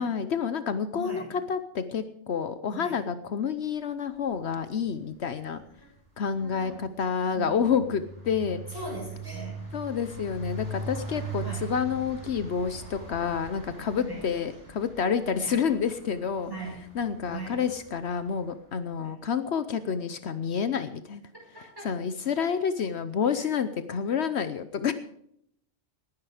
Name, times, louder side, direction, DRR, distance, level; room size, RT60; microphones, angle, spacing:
voice 1, 0.0-5.6 6.2-8.6 9.7-16.5 16.9-21.2 21.8-24.9, left 7 dB, 70° left, 11 dB, 1.1 m, -29 dB
voice 2, 0.9-1.3 2.7-2.9 5.5-5.6 6.3-6.8 7.3-7.4 8.7-9.6 11.4-11.7 14.0-14.2 15.4-15.6 16.4-16.8 17.3-17.6 19.0-19.1 21.5-21.8, right 2 dB, 20° right, -3 dB, 7.4 m, -39 dB
sound 1, 4.6-4.9 5.2-18.3, right 3 dB, 85° right, 4.9 m, -41 dB
18.5 x 10.5 x 5.0 m, 0.71 s
omnidirectional pair, 1.2 m